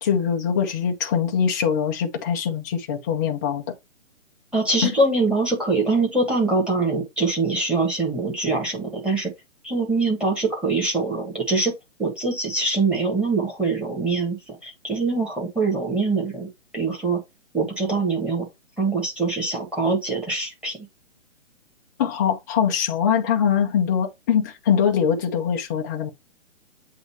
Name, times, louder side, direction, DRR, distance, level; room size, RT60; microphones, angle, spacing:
voice 1, 0.0-3.6 4.8-4.9 22.0-26.1, left 8 dB, 15° left, 0.5 m, -22 dB
voice 2, 4.5-9.3 9.6-11.7 12.0-16.5 16.7-17.2 17.5-18.5 18.8-20.8, right 3 dB, 5° right, 1.6 m, -23 dB
7.9 x 2.7 x 4.5 m
hypercardioid pair, 150°, 37 cm